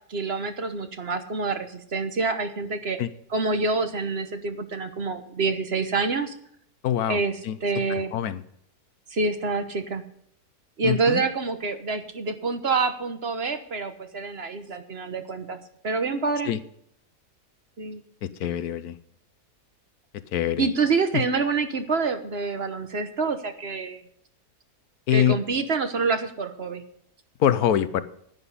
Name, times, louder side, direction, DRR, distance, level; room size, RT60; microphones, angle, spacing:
voice 1, 0.1-3.0 3.3-6.3 7.1-8.1 9.1-10.0 10.8-15.6 15.8-16.5 17.8-18.0 20.6-24.0 25.1-26.8, right 4 dB, 45° right, 8 dB, 1.2 m, -27 dB
voice 2, 6.8-7.2 7.4-7.6 7.9-8.4 10.8-11.2 16.5-16.6 18.2-19.0 20.3-20.7 21.1-21.2 25.1-25.4 27.4-28.0, left 10 dB, 75° left, 14 dB, 1.3 m, -24 dB
11.0 x 10.5 x 5.5 m, 0.69 s
omnidirectional pair, 1.7 m